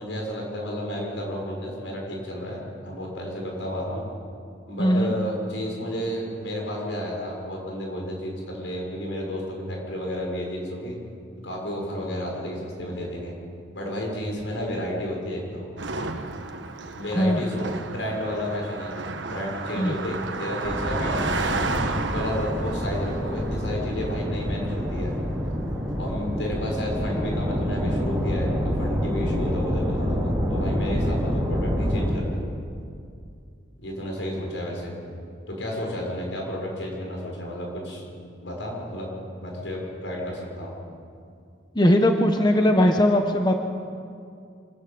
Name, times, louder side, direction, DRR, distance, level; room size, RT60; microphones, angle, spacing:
voice 1, 0.0-4.0 4.7-11.0 11.4-13.3 13.7-15.7 16.9-19.0 19.3-21.6 22.1-25.1 26.0-32.4 33.8-35.0 35.5-38.0 38.4-40.7, equal, 85° left, -1 dB, 6.5 m, -32 dB
voice 2, 4.8-5.1 17.1-17.4 19.8-19.9 41.7-43.6, left 1 dB, 25° left, 4 dB, 1.2 m, -19 dB
Car passing by, 15.8-25.3, right 3 dB, 80° right, 1.4 m, -33 dB
sound 1, 20.6-32.1, equal, 15° right, 4.0 m, -27 dB
26.5 x 14.0 x 8.8 m, 2.4 s
head